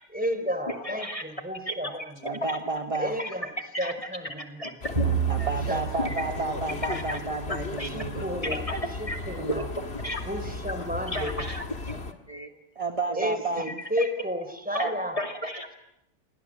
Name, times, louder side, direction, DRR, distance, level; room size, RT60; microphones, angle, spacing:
voice 1, 0.1-2.4 3.0-4.6 5.7-6.4 7.9-8.7 9.0-9.7 10.2-11.5 13.2-15.2, equal, 5° right, 8 dB, 3.9 m, -32 dB
voice 2, 0.7-1.2 1.7-1.8 2.5-2.6 3.2-3.3 3.7-3.9 4.6-5.1 5.4-5.5 6.0-6.3 6.8-7.2 7.5-7.9 8.7-8.8 9.1-9.2 9.6-9.7 10.0-10.2 11.1-12.0 12.3-12.5 13.6-14.1 14.7-14.9 15.2-15.7, left 1 dB, 30° left, 4 dB, 2.5 m, -33 dB
voice 3, 2.2-3.2 5.3-8.5 9.4-9.6 12.7-13.7, right 3 dB, 30° right, 5 dB, 1.4 m, -31 dB
sound 1, 4.8-12.1, left 3 dB, 60° left, 2.1 m, -36 dB
sound 2, 5.0-7.7, right 7 dB, 50° right, 8.4 m, -31 dB
28.5 x 22.5 x 7.6 m, 0.83 s
omnidirectional pair, 1.2 m